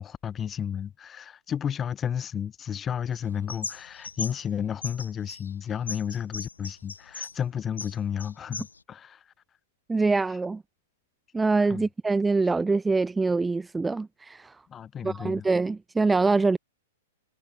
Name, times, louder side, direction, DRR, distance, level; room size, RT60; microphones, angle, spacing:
voice 1, 0.0-9.3 10.3-10.4 11.7-11.9 14.7-15.5, left 8 dB, 20° left, 1.7 m, -32 dB
sound 1, 3.2-4.5 4.8-7.4 7.7-8.8, left 4 dB, 75° left, 2.5 m, -38 dB
voice 2, 9.9-10.6 11.3-14.6 15.0-16.6, right 3 dB, 10° right, 0.7 m, -24 dB
figure-of-eight pair, 105°, 0 cm